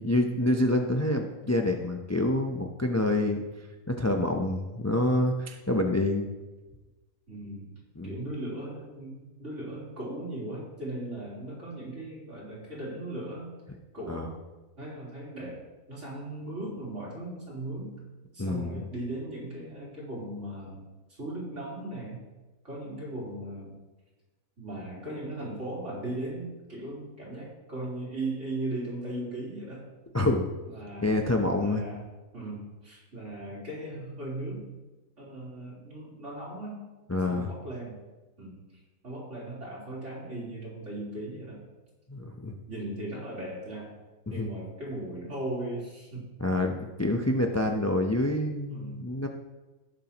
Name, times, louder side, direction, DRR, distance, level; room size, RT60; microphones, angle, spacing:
voice 1, 0.0-3.4 3.9-6.3 8.0-8.1 14.1-14.3 18.4-18.8 30.1-30.5 31.0-31.8 37.1-37.5 42.1-42.5 44.4-44.5 46.4-49.3, left 1 dB, 20° left, 3 dB, 0.4 m, -27 dB
voice 2, 3.1-3.4 7.3-7.7 8.0-13.5 13.9-14.3 14.8-15.6 15.9-17.9 18.3-20.8 21.1-22.2 22.6-23.8 24.6-29.9 30.7-31.1 31.6-32.0 32.3-34.6 35.2-36.8 37.3-38.0 38.4-38.6 39.0-41.6 42.7-44.0 44.3-46.3 48.7-49.0, right 1 dB, 55° right, -6 dB, 4.0 m, -38 dB
17.5 x 7.3 x 3.0 m, 1.2 s
omnidirectional pair, 1.5 m